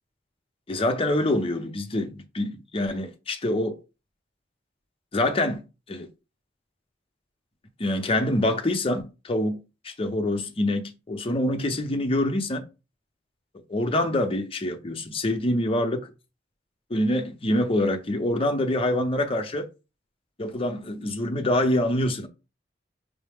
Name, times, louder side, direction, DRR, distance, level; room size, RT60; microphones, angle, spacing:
voice 1, 0.7-3.8 5.1-6.1 7.8-12.6 13.7-16.1 16.9-19.7 20.4-22.3, left 1 dB, 30° left, 0.6 m, -25 dB
5.4 x 2.1 x 3.4 m
head